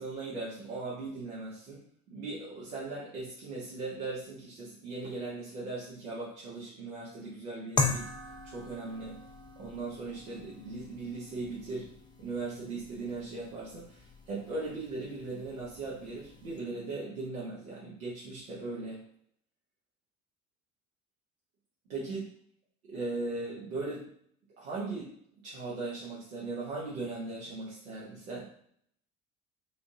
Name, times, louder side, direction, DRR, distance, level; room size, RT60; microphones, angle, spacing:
voice 1, 0.0-1.8 2.1-8.1 8.4-9.2 9.6-19.0 21.9-22.2 22.8-24.1 24.6-25.1 25.4-28.5, right 3 dB, 80° right, -7 dB, 0.9 m, -38 dB
sound 1, 7.8-16.6, left 4 dB, 10° left, 0.4 m, -39 dB
3.5 x 2.6 x 2.6 m, 0.63 s
figure-of-eight pair, 60°, 41 cm